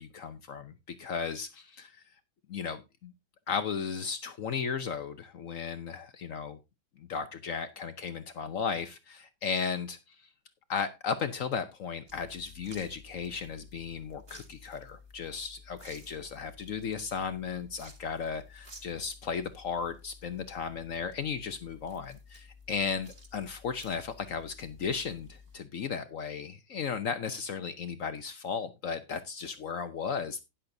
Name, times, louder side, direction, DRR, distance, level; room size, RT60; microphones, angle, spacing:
voice 1, 0.0-2.0 2.5-3.1 3.5-6.6 7.0-10.3 10.7-30.4, left 6 dB, 65° left, 10 dB, 0.8 m, -35 dB
sound 1, 12.1-25.6, left 3 dB, 30° right, 2.0 m, -53 dB
12.5 x 10.0 x 2.6 m, 0.24 s
omnidirectional pair, 2.2 m